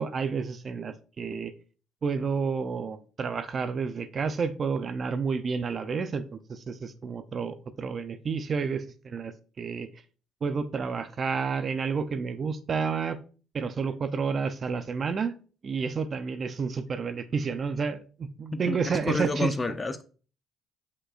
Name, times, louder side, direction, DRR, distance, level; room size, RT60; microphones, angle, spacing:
voice 1, 0.0-1.5 2.0-9.9 10.4-13.2 13.5-15.4 15.6-19.5, right 5 dB, 45° right, 0.6 m, -30 dB
voice 2, 18.5-20.0, left 2 dB, 25° left, 0.7 m, -30 dB
8.3 x 5.2 x 2.5 m
supercardioid pair, 70°, 0 cm